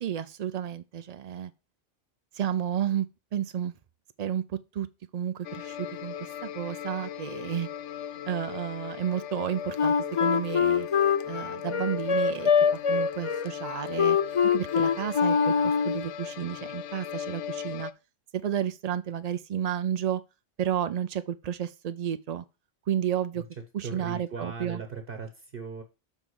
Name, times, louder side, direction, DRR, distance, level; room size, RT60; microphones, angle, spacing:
voice 1, 0.0-1.5 2.3-3.7 4.2-4.9 5.1-7.7 8.2-9.9 10.2-10.9 11.3-14.2 14.5-17.9 18.4-20.2 20.6-22.4 22.9-23.4 23.7-24.8, right 9 dB, 90° right, 0.3 m, -31 dB
sound 1, 5.4-17.9, left 9 dB, 80° left, 0.9 m, -37 dB
Wind instrument woodwind instrument, 9.8-16.1, left 6 dB, 55° left, 0.3 m, -24 dB
voice 2, 23.8-25.8, right 5 dB, 55° right, 1.1 m, -38 dB
7.1 x 3.5 x 6.1 m
omnidirectional pair, 1.2 m